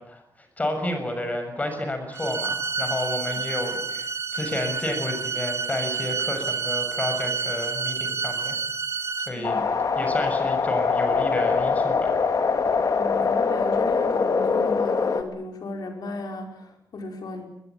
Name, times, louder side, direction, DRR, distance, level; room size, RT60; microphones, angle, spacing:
voice 1, 0.0-8.6 9.3-9.6 9.9-12.2, left 1 dB, 20° left, 6 dB, 6.6 m, -31 dB
sound 1, 2.1-9.3, right 5 dB, 45° right, 2.9 m, -29 dB
voice 2, 9.3-9.7 12.9-17.5, left 3 dB, 70° left, 3 dB, 5.4 m, -35 dB
sound 2, 9.4-15.2, left 5 dB, 55° left, 2.6 m, -23 dB
23.5 x 21.0 x 9.1 m, 0.76 s
wide cardioid pair, 150°, 7 cm